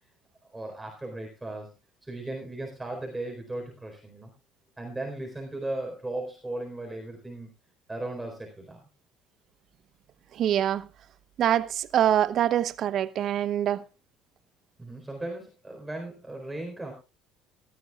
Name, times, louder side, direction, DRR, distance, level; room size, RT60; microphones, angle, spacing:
voice 1, 0.5-1.7 2.0-4.3 4.8-7.5 7.9-8.8 14.8-16.9, right 2 dB, 10° right, 4.3 m, -36 dB
voice 2, 10.3-10.9 11.4-13.8, right 10 dB, 55° right, 0.9 m, -24 dB
18.0 x 13.0 x 2.4 m
hypercardioid pair, 60°, 0 cm